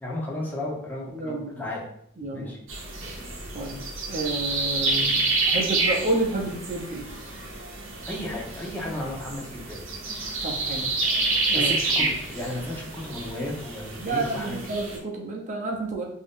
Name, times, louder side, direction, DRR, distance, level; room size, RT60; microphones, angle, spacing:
voice 1, 0.0-1.8 2.3-2.6 8.1-9.8 11.5-14.6, left 1 dB, 10° left, -4 dB, 0.8 m, -34 dB
voice 2, 1.1-1.6 2.2-2.6 3.5-7.1 10.4-10.9 11.5-11.7 12.0-12.1 14.0-16.0, right 2 dB, 35° right, 0 dB, 0.7 m, -30 dB
sound 1, 2.7-15.0, right 3 dB, 70° right, 0.8 m, -28 dB
3.0 x 2.7 x 3.5 m, 0.69 s
head